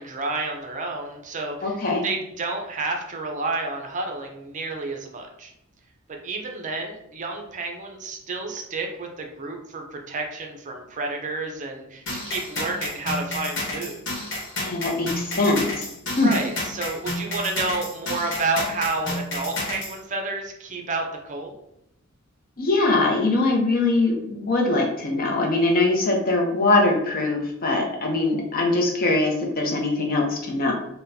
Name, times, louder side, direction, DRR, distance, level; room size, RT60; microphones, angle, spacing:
voice 1, 0.0-1.8 2.0-5.5 6.2-14.0 16.2-21.6, right 3 dB, 35° right, 2 dB, 0.5 m, -30 dB
voice 2, 1.6-2.0 14.6-15.7 16.2-16.3 22.6-30.7, left 2 dB, 45° left, 1 dB, 0.6 m, -22 dB
sound 1, 12.1-20.0, left 1 dB, 60° left, 1.1 m, -30 dB
4.1 x 2.2 x 2.6 m, 0.79 s
head